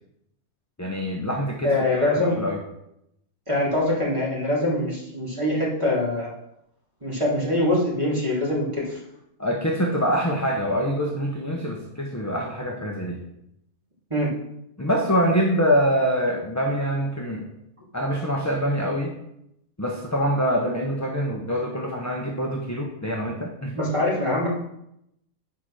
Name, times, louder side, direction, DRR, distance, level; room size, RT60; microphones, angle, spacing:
voice 1, 0.8-2.6 9.4-13.2 14.8-17.4 17.9-19.1 19.8-23.7, equal, 15° left, -1 dB, 0.8 m, -25 dB
voice 2, 1.6-2.4 3.5-6.3 7.0-9.0 14.1-14.3 23.7-24.5, left 1 dB, 20° right, -6 dB, 3.1 m, -23 dB
8.7 x 5.0 x 6.2 m, 0.81 s
omnidirectional pair, 1.5 m